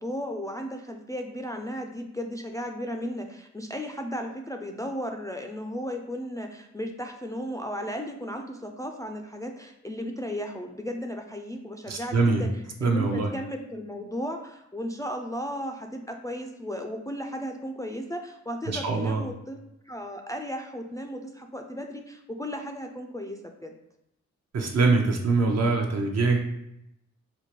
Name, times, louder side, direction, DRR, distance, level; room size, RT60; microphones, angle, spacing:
voice 1, 0.0-12.5 12.8-19.6 19.9-23.7, equal, 10° left, 3 dB, 0.3 m, -35 dB
voice 2, 11.9-12.4 12.8-13.3 18.7-19.2 24.5-26.4, right 3 dB, 60° right, 2 dB, 0.7 m, -23 dB
4.3 x 2.2 x 2.9 m, 0.82 s
cardioid pair, 75°, 29 cm